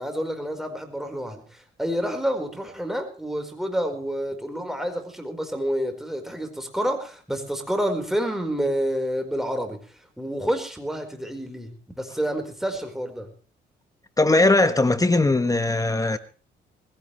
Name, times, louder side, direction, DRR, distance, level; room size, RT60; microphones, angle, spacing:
voice 1, 0.0-13.3, equal, ahead, 4.6 m, -29 dB
voice 2, 14.2-16.2, left 2 dB, 15° left, 1.3 m, -19 dB
21.0 x 16.0 x 3.3 m
cardioid pair, 90°, 20 cm